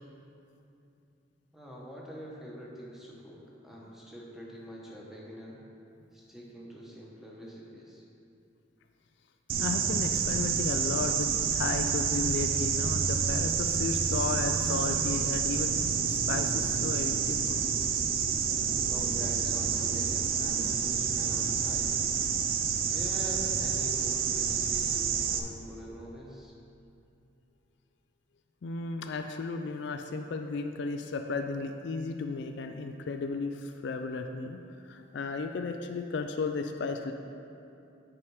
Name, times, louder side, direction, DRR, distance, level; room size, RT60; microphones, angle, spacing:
voice 1, 1.5-5.6 6.1-8.0 18.9-22.2 22.9-26.5, equal, ahead, -5 dB, 1.1 m, -44 dB
sound 1, 9.5-25.4, right 6 dB, 50° right, 0.4 m, -28 dB
voice 2, 9.6-17.7 28.6-34.6 34.9-37.1, left 4 dB, 60° left, 5 dB, 0.3 m, -34 dB
8.5 x 4.8 x 4.8 m, 2.6 s
head